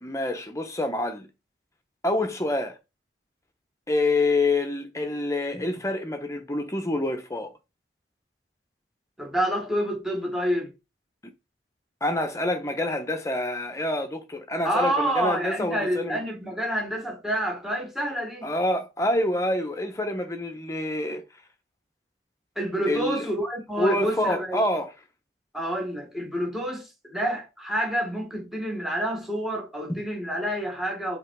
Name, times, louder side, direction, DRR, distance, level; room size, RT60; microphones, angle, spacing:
voice 1, 0.0-1.3 2.0-2.8 3.9-7.5 12.0-16.2 18.4-21.2 22.9-23.3 23.8-24.9 29.9-30.0, left 1 dB, 15° left, 0.9 m, -27 dB
voice 2, 9.2-10.7 14.6-18.5 22.5-24.6 25.5-31.2, equal, ahead, 1.7 m, -28 dB
5.5 x 3.6 x 4.7 m
head